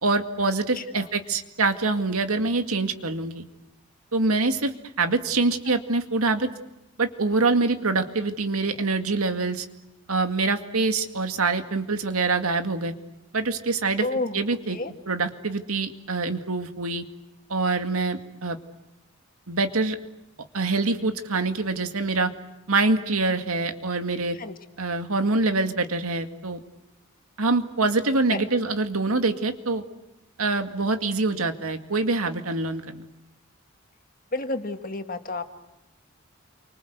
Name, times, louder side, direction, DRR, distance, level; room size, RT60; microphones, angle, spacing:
voice 1, 0.0-3.4 4.1-4.7 5.0-6.5 7.0-9.7 10.1-12.9 13.3-14.0 14.3-14.8 15.1-17.0 17.5-18.6 19.5-20.0 20.5-22.3 22.7-24.4 24.8-26.6 27.4-29.8 30.4-33.0, right 3 dB, 85° right, 7 dB, 2.2 m, -25 dB
voice 2, 0.7-1.1 5.7-5.8 14.0-14.4 14.7-14.9 24.3-24.6 28.3-28.5 34.3-35.4, left 2 dB, 40° left, 6 dB, 2.0 m, -31 dB
29.0 x 25.0 x 8.1 m, 0.94 s
head